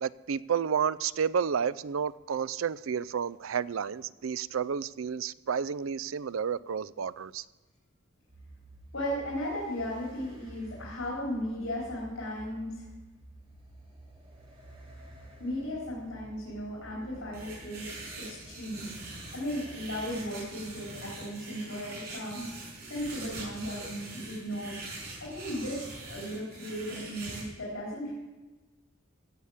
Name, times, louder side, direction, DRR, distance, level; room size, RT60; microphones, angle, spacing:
voice 1, 0.0-7.4, right 7 dB, 80° right, 0.4 m, -31 dB
sound 1, 8.3-20.0, right 1 dB, 30° right, 2.4 m, -51 dB
voice 2, 8.9-12.8 15.4-17.9 18.3-18.9 19.3-22.4 22.9-24.8 25.2-28.1, equal, 85° left, 4.1 m, -36 dB
sound 2, 17.3-27.4, right 2 dB, 50° right, 6.0 m, -43 dB
16.0 x 8.2 x 7.2 m
head